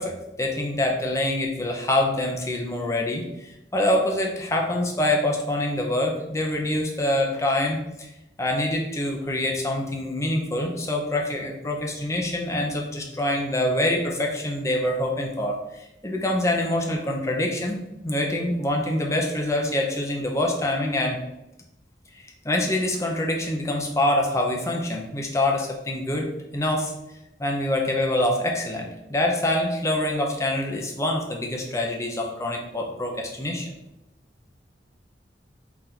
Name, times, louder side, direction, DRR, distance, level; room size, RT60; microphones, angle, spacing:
voice 1, 0.0-8.1 8.4-21.2 22.2-26.3 26.5-26.9 27.4-33.7, left 1 dB, 15° left, 0 dB, 0.5 m, -25 dB
4.0 x 2.5 x 4.2 m, 0.91 s
head